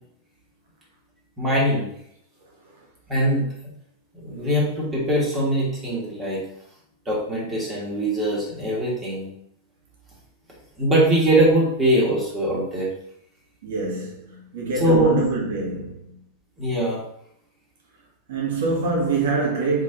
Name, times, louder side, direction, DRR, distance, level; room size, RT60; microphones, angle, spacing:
voice 1, 1.4-1.9 3.1-3.5 4.1-6.4 7.0-9.3 10.8-12.9 14.8-15.2 16.6-17.0, right 1 dB, 15° right, 1.4 m, -21 dB
voice 2, 2.4-2.9 13.6-16.2 18.3-19.8, right 3 dB, 80° right, 1.7 m, -25 dB
3.6 x 3.5 x 3.9 m
supercardioid pair, 155°, 0 cm